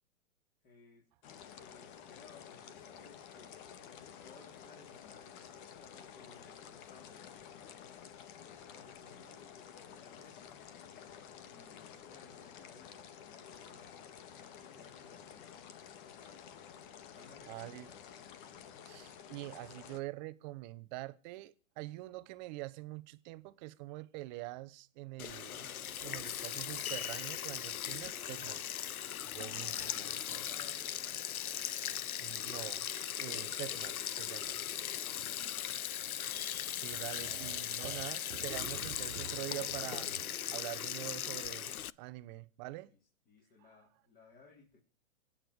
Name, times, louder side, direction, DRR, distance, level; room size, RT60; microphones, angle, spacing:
voice 1, 0.6-1.1 1.4-3.7 4.2-5.4 5.8-7.5 8.4-10.7 11.5-14.0 14.3-15.8 17.1-18.1 28.2-28.8 29.8-31.4 31.8-32.0 34.4-36.0 42.9-43.0 43.3-44.8, left 3 dB, 20° left, 4.4 m, -61 dB
sound 1, 1.2-20.0, left 8 dB, 35° left, 1.9 m, -52 dB
voice 2, 16.2-16.7 17.5-17.9 18.8-28.6 29.2-30.4 31.6-34.6 36.7-41.7 42.0-42.9, right 19 dB, 30° right, 1.1 m, -45 dB
Sink (filling or washing), 25.2-41.9, left 10 dB, 85° left, 0.8 m, -39 dB
sound 2, 36.9-40.5, right 12 dB, 65° right, 0.8 m, -49 dB
25.0 x 9.3 x 4.9 m
hypercardioid pair, 135°, 42 cm